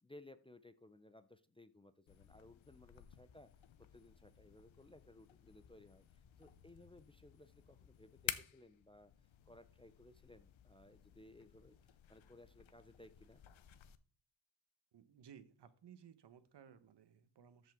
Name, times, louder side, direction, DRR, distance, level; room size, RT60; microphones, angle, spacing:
voice 1, 0.0-3.5 3.8-9.1 9.4-13.4, left 1 dB, 10° left, 11 dB, 0.4 m, -61 dB
sound 1, 2.1-14.0, left 11 dB, 75° left, 0.8 m, -52 dB
voice 2, 14.9-17.7, right 8 dB, 60° right, 12 dB, 1.1 m, -60 dB
13.5 x 5.5 x 3.6 m, 0.39 s
wide cardioid pair, 105°, 47 cm